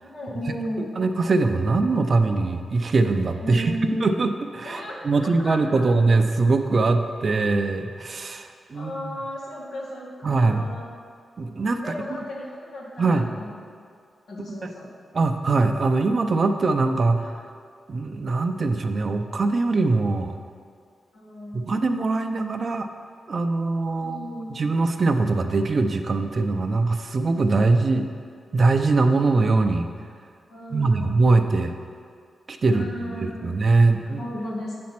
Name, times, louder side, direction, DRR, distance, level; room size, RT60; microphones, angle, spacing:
voice 1, 0.0-0.9 3.4-4.2 4.6-5.8 8.7-10.9 11.8-13.6 14.3-14.9 21.1-21.7 23.9-24.5 30.5-31.1 32.7-33.6 34.2-34.7, equal, 85° left, -6 dB, 1.9 m, -34 dB
voice 2, 0.8-3.7 4.0-9.1 10.2-10.8 11.4-11.8 13.0-13.3 14.6-14.7 15.1-17.3 17.9-20.3 21.7-22.9 23.3-28.1 28.5-29.9 30.7-31.7 32.5-34.2, right 3 dB, 55° right, 7 dB, 0.5 m, -22 dB
8.4 x 4.3 x 5.9 m, 2.2 s
cardioid pair, 55°, 0 cm